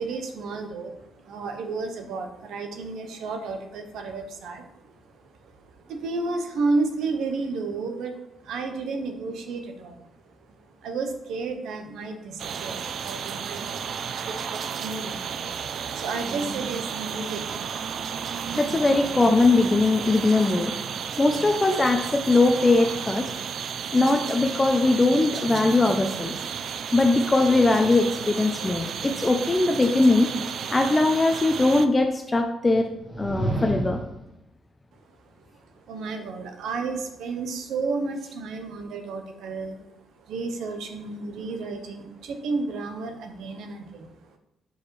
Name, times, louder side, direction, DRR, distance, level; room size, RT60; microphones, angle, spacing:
voice 1, 0.0-18.1 35.4-44.4, right 3 dB, 80° right, 6 dB, 0.8 m, -32 dB
sound 1, 12.4-31.9, right 7 dB, 60° right, 0.4 m, -33 dB
voice 2, 18.6-20.7 21.2-23.3 23.9-26.3 26.9-30.3 30.7-32.9 33.2-34.0, left 2 dB, 20° left, 4 dB, 0.5 m, -21 dB
sound 2, 32.9-34.2, right 1 dB, 5° right, 1.9 m, -29 dB
6.5 x 4.8 x 3.2 m, 0.86 s
cardioid pair, 90°, 0 cm